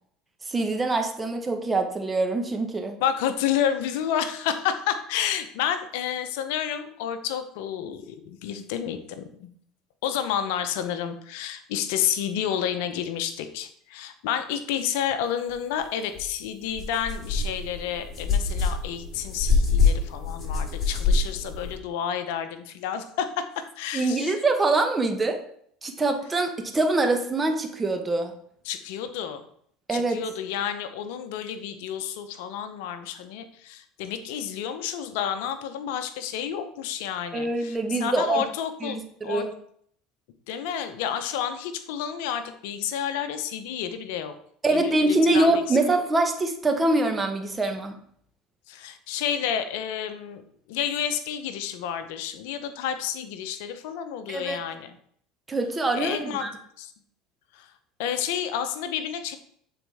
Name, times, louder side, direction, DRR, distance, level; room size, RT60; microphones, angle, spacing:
voice 1, 0.5-3.0 23.9-25.4 25.8-28.3 29.9-30.2 37.3-38.4 38.8-39.5 44.6-47.9 54.3-54.6 55.5-56.5, right 2 dB, 20° right, 5 dB, 1.1 m, -24 dB
voice 2, 3.0-9.5 10.0-24.3 28.6-29.4 29.9-39.4 40.5-44.3 44.7-45.8 48.7-50.4 50.7-54.9 55.9-56.5 56.8-56.9 57.5-57.7 58.0-59.4, left 9 dB, 75° left, 9 dB, 0.7 m, -30 dB
sound 1, 16.1-16.3 16.7-21.7, left 4 dB, 35° left, 2.8 m, -25 dB
8.9 x 4.2 x 3.5 m, 0.65 s
hypercardioid pair, 90°, 0 cm